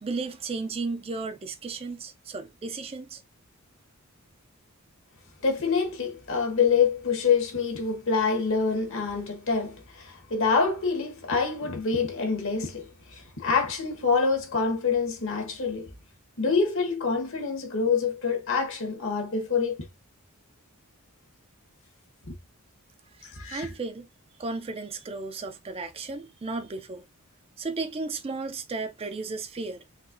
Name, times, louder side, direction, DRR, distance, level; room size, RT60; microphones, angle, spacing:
voice 1, 0.0-3.2 23.2-24.1 24.4-27.0 27.6-29.8, right 3 dB, 25° right, 0.4 m, -34 dB
voice 2, 5.4-15.9 16.4-19.8 22.3-22.4 23.2-23.7, left 5 dB, 60° left, 1.1 m, -26 dB
4.2 x 2.9 x 2.5 m
head